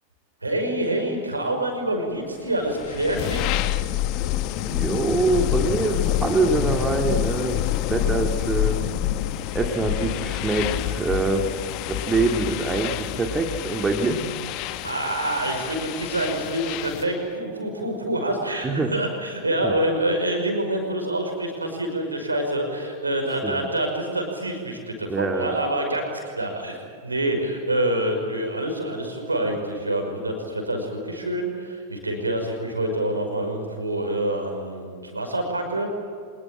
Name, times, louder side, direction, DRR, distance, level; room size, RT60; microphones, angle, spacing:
voice 1, 0.4-3.5 14.8-35.9, right 1 dB, 80° right, 4 dB, 5.7 m, -26 dB
sound 1, 2.6-17.2, left 12 dB, 40° left, 1.4 m, -27 dB
voice 2, 4.6-8.9 9.5-11.5 11.9-14.2 18.6-18.9 19.6-19.8 23.4-23.7 25.1-25.6, right 3 dB, 15° right, 4 dB, 2.3 m, -24 dB
25.5 x 21.0 x 8.9 m, 2.3 s
figure-of-eight pair, 90°, 0 cm